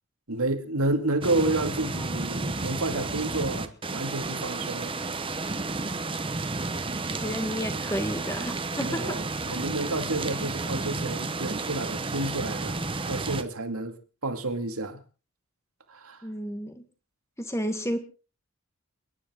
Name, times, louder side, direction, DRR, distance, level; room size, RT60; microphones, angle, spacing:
voice 1, 0.3-4.9 8.8-12.8 13.1-14.0 14.2-15.0 15.9-16.2, right 2 dB, 80° right, 2.3 m, -30 dB
sound 1, 1.2-13.4, right 3 dB, 25° right, 1.0 m, -32 dB
voice 2, 7.1-9.2 16.2-16.8 17.4-18.0, equal, 15° left, 1.6 m, -31 dB
30.0 x 10.5 x 3.7 m
head